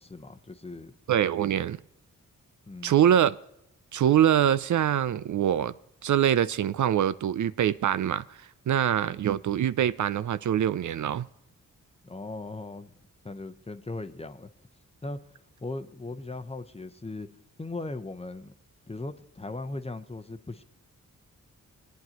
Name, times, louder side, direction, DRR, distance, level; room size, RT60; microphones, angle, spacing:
voice 1, 0.0-0.9 2.7-3.0 12.0-13.0 13.2-14.5 15.0-17.3 17.6-18.5 18.9-20.6, left 2 dB, 20° left, 0.8 m, -38 dB
voice 2, 1.1-1.8 2.8-3.4 3.9-5.7 6.0-8.2 8.7-11.3, right 10 dB, 65° right, 0.4 m, -24 dB
21.0 x 9.3 x 2.9 m
cardioid pair, 70°, 32 cm